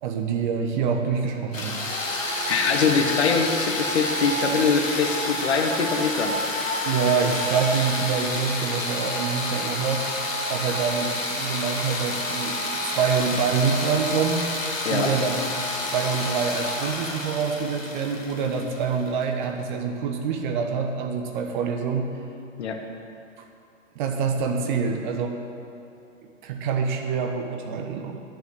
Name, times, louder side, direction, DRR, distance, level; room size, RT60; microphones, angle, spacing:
voice 1, 0.0-1.8 6.8-10.0 10.5-14.5 14.9-15.4 15.9-22.1 23.9-25.4 26.4-28.2, right 6 dB, 40° right, 4 dB, 1.3 m, -26 dB
sound 1, 1.5-19.2, left 1 dB, 80° left, 1.9 m, -29 dB
voice 2, 2.5-6.4 14.8-15.1 22.6-22.8, left 5 dB, 60° left, 3 dB, 1.5 m, -23 dB
10.5 x 7.0 x 8.0 m, 2.6 s
figure-of-eight pair, 110°, 38 cm